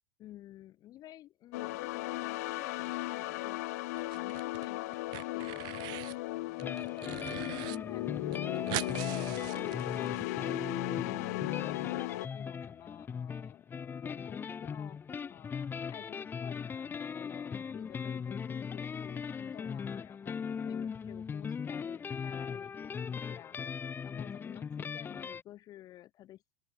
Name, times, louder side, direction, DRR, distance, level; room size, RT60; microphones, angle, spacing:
voice 1, 0.2-11.8 12.3-26.4, left 14 dB, 40° left, 1.8 m, -53 dB
sound 1, 1.5-12.3, left 20 dB, 60° left, 1.1 m, -36 dB
sound 2, 4.0-4.7 4.9-6.2 6.6-7.8 8.0-8.1 8.3-10.2, right 22 dB, 50° right, 1.0 m, -41 dB
sound 3, 6.6-25.4, left 6 dB, 20° left, 0.9 m, -39 dB
open air
figure-of-eight pair, 80°, 10 cm